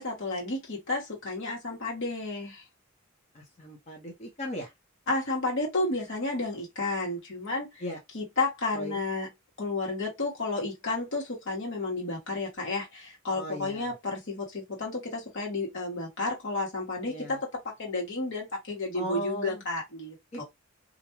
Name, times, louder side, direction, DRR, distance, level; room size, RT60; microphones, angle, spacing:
voice 1, 0.0-2.6 5.1-7.8 8.1-9.3 9.6-17.4 17.8-20.4, left 2 dB, 65° left, 1.2 m, -32 dB
voice 2, 3.3-4.7 7.8-8.0 8.7-9.0 13.3-13.9 17.1-17.4 18.9-19.6 20.3-20.4, equal, 35° left, 0.7 m, -37 dB
2.5 x 2.2 x 2.9 m
head